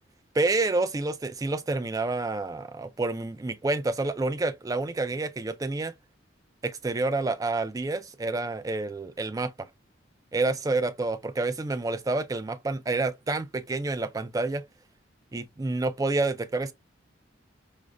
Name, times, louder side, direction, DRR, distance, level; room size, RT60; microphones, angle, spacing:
voice 1, 0.3-5.9 6.6-9.7 10.3-14.6 15.3-16.7, right 3 dB, 20° right, 0.3 m, -28 dB
4.8 x 2.1 x 2.3 m
head